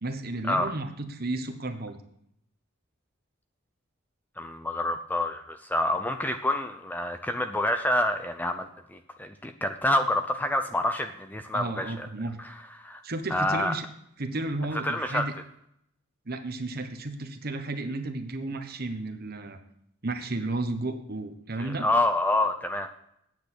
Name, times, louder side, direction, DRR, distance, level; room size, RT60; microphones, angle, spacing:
voice 1, 0.0-2.0 11.5-12.4 13.0-13.9 14.2-15.3 16.3-19.6 20.0-21.9, right 2 dB, 45° right, 7 dB, 1.1 m, -33 dB
voice 2, 4.4-12.1 12.4-13.0 13.3-13.7 14.7-15.3 21.6-22.9, left 1 dB, 10° left, 7 dB, 0.6 m, -28 dB
9.1 x 7.9 x 6.2 m, 0.73 s
head